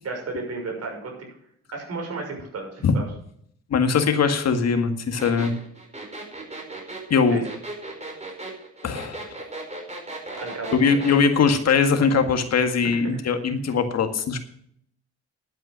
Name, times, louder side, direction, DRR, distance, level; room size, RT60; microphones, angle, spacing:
voice 1, 0.0-1.3 1.7-3.1 7.3-7.4 10.3-11.2 12.8-13.1, right 3 dB, 55° right, 2 dB, 6.3 m, -33 dB
voice 2, 3.7-5.5 7.1-7.4 8.8-9.3 10.7-14.4, left 5 dB, 60° left, 6 dB, 1.9 m, -21 dB
sound 1, 5.2-11.2, right 2 dB, 20° right, 5.1 m, -36 dB
11.5 x 9.0 x 6.4 m, 0.66 s
cardioid pair, 90°, 30 cm